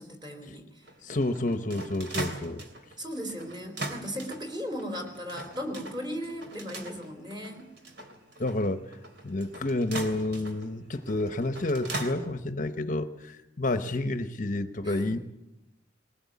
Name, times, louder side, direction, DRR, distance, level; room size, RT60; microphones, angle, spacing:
voice 1, 0.0-0.9 3.0-7.7 14.8-15.1, equal, 25° right, 4 dB, 3.9 m, -37 dB
sound 1, 0.8-12.1, right 2 dB, 60° right, 3.1 m, -40 dB
voice 2, 1.0-2.6 8.4-8.9 9.2-15.2, left 2 dB, 40° left, 9 dB, 0.9 m, -30 dB
21.5 x 19.5 x 8.3 m, 0.96 s
head